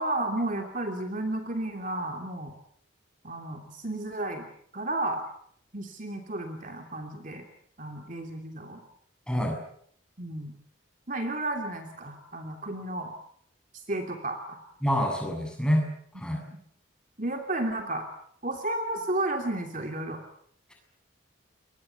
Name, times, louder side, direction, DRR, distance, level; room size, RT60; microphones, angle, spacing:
voice 1, 0.0-2.5 3.2-4.4 4.7-5.3 5.7-7.5 7.8-8.8 10.2-10.5 11.1-13.1 13.9-14.6 16.3-16.6 17.2-18.1 18.4-20.2, right 2 dB, 40° right, 4 dB, 2.9 m, -32 dB
voice 2, 9.3-9.6 14.8-15.9 16.2-16.4, equal, 5° left, 1 dB, 7.6 m, -26 dB
29.0 x 23.5 x 7.0 m, 0.64 s
head